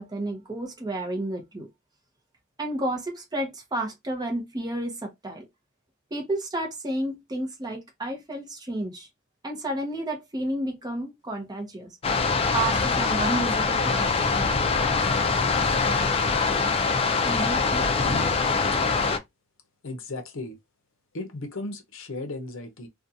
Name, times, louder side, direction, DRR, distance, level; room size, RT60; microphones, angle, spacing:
voice 1, 0.0-1.7 2.6-5.4 6.1-9.1 9.4-11.9 12.5-14.3 17.2-17.9, right 1 dB, 20° right, 0.7 m, -31 dB
sound 1, 12.0-19.2, left 4 dB, 30° left, 0.4 m, -23 dB
voice 2, 19.8-20.6 21.1-22.9, left 2 dB, 70° left, 0.7 m, -35 dB
2.5 x 2.3 x 2.6 m
head